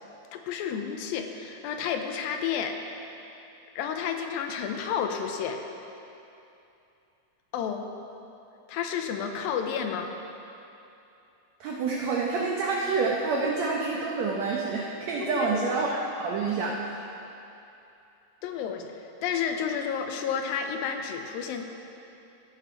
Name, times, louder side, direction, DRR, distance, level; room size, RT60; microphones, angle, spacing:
voice 1, 0.3-2.8 3.7-5.6 7.5-7.9 8.7-10.1 15.2-15.8 18.4-21.6, left 7 dB, 85° left, 5 dB, 2.4 m, -31 dB
voice 2, 11.6-16.9, right 4 dB, 85° right, -2 dB, 1.5 m, -28 dB
16.5 x 6.9 x 4.7 m, 2.8 s
omnidirectional pair, 4.2 m